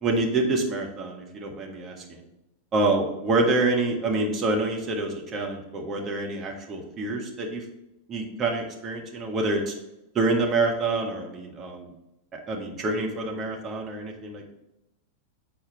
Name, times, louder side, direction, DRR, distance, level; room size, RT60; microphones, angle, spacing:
voice 1, 0.0-2.2 2.7-7.6 8.1-9.7 10.1-11.9 12.3-14.5, right 2 dB, 25° right, 0 dB, 1.5 m, -27 dB
7.7 x 4.4 x 4.2 m, 0.92 s
figure-of-eight pair, 90°, 0 cm